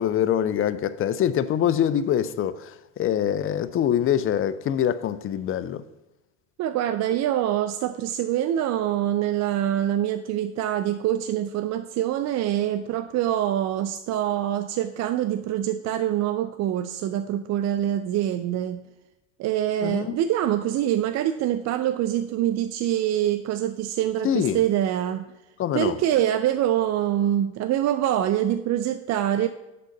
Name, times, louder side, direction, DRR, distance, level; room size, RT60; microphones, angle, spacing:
voice 1, 0.0-5.8 19.8-20.2 24.2-24.6 25.6-26.0, left 10 dB, 35° left, 0.5 m, -24 dB
voice 2, 6.6-18.9 19.4-25.3 25.7-29.5, right 11 dB, 40° right, 0.5 m, -25 dB
7.7 x 3.8 x 6.4 m
hypercardioid pair, 85°, 41 cm